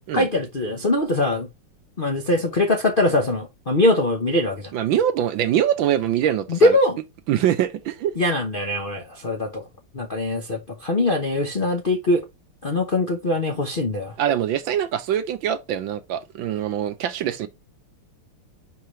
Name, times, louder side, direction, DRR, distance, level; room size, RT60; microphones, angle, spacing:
voice 1, 0.1-1.5 2.0-4.7 6.5-7.0 8.2-9.6 9.9-12.2 12.6-14.1, left 2 dB, 50° left, 0.6 m, -22 dB
voice 2, 4.7-6.8 7.3-8.1 14.2-17.5, right 10 dB, 70° right, 1.4 m, -23 dB
6.4 x 4.8 x 3.1 m
omnidirectional pair, 2.4 m